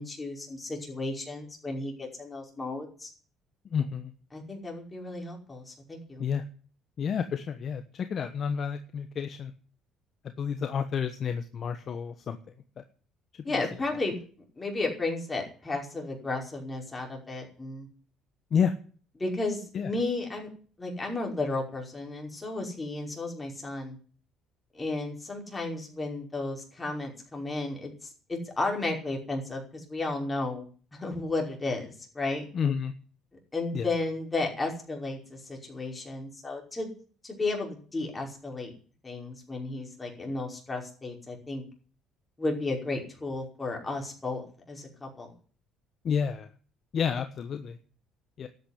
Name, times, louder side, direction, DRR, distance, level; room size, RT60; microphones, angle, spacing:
voice 1, 0.0-3.1 4.3-6.2 13.4-14.2 14.6-17.9 19.2-20.5 20.8-24.0 24.7-30.6 30.9-32.4 33.5-36.9 37.2-38.7 39.0-41.6 42.4-45.3, left 2 dB, 15° left, 0 dB, 5.3 m, -33 dB
voice 2, 3.7-4.1 6.2-6.4 7.0-9.5 10.4-12.4 12.8-12.9 13.3-13.4 18.5-18.7 19.7-19.9 32.5-32.9 33.7-33.9 46.0-46.5 46.9-47.8 48.4-48.5, left 7 dB, 40° left, 8 dB, 1.2 m, -30 dB
12.5 x 9.3 x 10.0 m, 0.42 s
cardioid pair, 130°, 0 cm